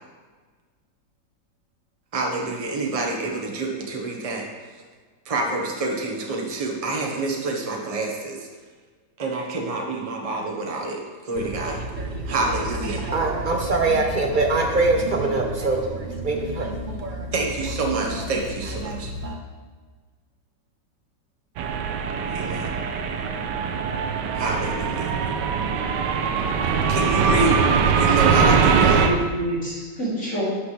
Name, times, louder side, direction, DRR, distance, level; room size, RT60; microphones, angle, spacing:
voice 1, 2.1-4.4 5.3-8.4 9.2-11.0 11.3-11.8 12.3-13.0 17.3-19.1 22.3-22.7 24.3-25.1 26.9-27.6 28.0-29.1, right 3 dB, 25° right, 0 dB, 1.0 m, -27 dB
voice 2, 11.4-19.4, right 2 dB, 50° right, 2 dB, 0.5 m, -25 dB
sound 1, 21.6-29.1, right 6 dB, 75° right, 1.3 m, -22 dB
voice 3, 28.4-30.4, right 1 dB, 45° left, -9 dB, 3.4 m, -27 dB
11.5 x 6.7 x 3.3 m, 1.4 s
omnidirectional pair, 2.0 m